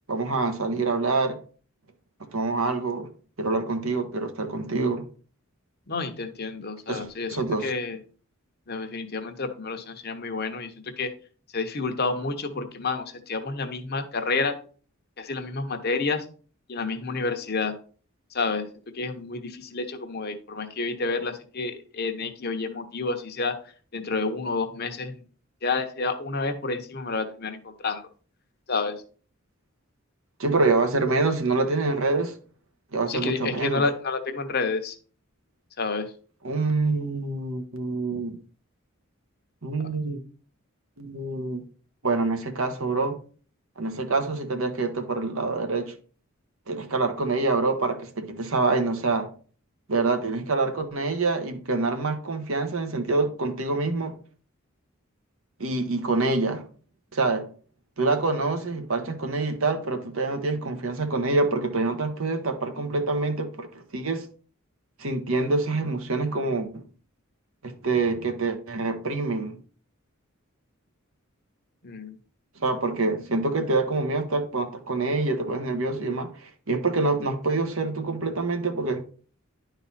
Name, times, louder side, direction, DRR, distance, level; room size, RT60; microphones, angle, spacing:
voice 1, 0.1-1.4 2.3-3.1 3.4-5.1 6.9-7.7 30.4-32.3 32.9-33.8 36.4-38.4 39.6-40.2 41.0-41.6 42.0-43.2 43.8-46.0 46.7-49.3 49.9-54.1 55.6-56.7 57.1-57.5 58.0-64.3 65.0-66.8 67.6-69.6 72.6-79.0, right 3 dB, 75° right, 1.2 m, -26 dB
voice 2, 5.9-8.0 8.7-11.1 11.5-14.6 15.2-16.3 16.7-17.8 18.3-18.7 18.9-25.2 25.6-28.0 28.7-29.0 33.1-35.0 35.8-36.1 71.8-72.2, left 3 dB, 50° left, 0.9 m, -29 dB
10.5 x 4.1 x 4.1 m
head